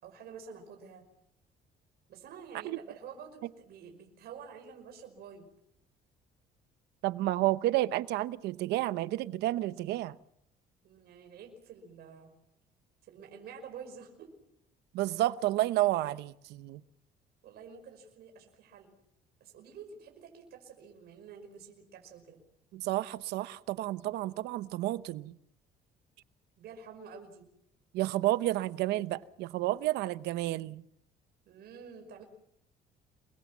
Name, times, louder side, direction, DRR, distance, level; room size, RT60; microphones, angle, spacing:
voice 1, 0.0-1.0 2.1-5.5 10.8-12.3 13.0-14.3 17.4-18.9 19.4-22.4 26.6-27.4 31.5-32.2, right 6 dB, 70° right, 5.5 m, -49 dB
voice 2, 7.0-10.2 14.9-16.8 22.7-25.3 27.9-30.8, right 16 dB, 85° right, 0.9 m, -31 dB
28.5 x 22.5 x 7.4 m
cardioid pair, 110°, 17 cm